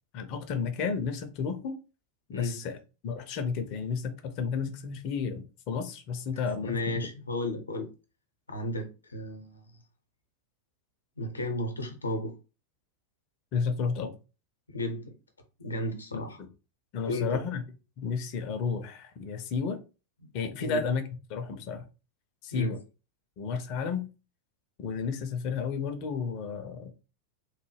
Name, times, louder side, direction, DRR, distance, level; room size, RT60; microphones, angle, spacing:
voice 1, 0.1-1.8 2.3-2.8 3.0-7.0 13.5-14.1 16.1-16.5 16.9-17.6 18.0-19.8 20.3-21.0 21.3-21.8 22.4-22.8 23.4-24.1 24.8-26.9, left 5 dB, 40° left, 0.6 m, -32 dB
voice 2, 6.6-7.9 8.5-9.7 11.2-12.3 14.7-15.1 15.6-16.4 17.0-17.4 20.2-20.8 22.5-22.8, left 1 dB, 80° left, 0.7 m, -34 dB
3.1 x 2.2 x 3.2 m
figure-of-eight pair, 90°, 0 cm